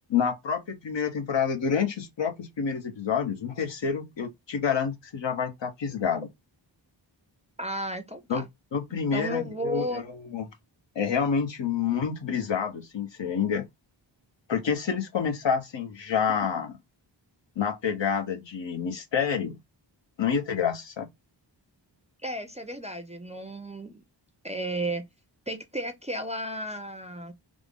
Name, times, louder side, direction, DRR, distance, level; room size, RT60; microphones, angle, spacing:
voice 1, 0.1-6.3 8.3-8.4 8.7-10.5 10.9-13.6 14.5-16.7 17.6-19.6 20.2-21.1, left 6 dB, 70° left, 0.9 m, -28 dB
voice 2, 7.6-8.5 8.9-10.0 22.2-24.0 24.4-25.0 25.5-27.3, right 1 dB, 15° right, 0.4 m, -33 dB
3.5 x 2.0 x 3.5 m
wide cardioid pair, 115°, 45 cm